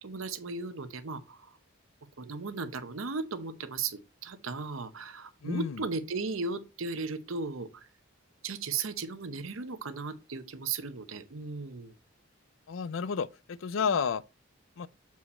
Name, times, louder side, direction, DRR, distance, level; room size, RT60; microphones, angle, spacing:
voice 1, 0.0-1.5 2.2-7.9 8.4-11.9, right 4 dB, 85° right, 0.8 m, -36 dB
voice 2, 5.4-5.8 12.7-14.2 14.8-14.9, left 6 dB, 80° left, 0.4 m, -31 dB
7.1 x 4.7 x 4.2 m
head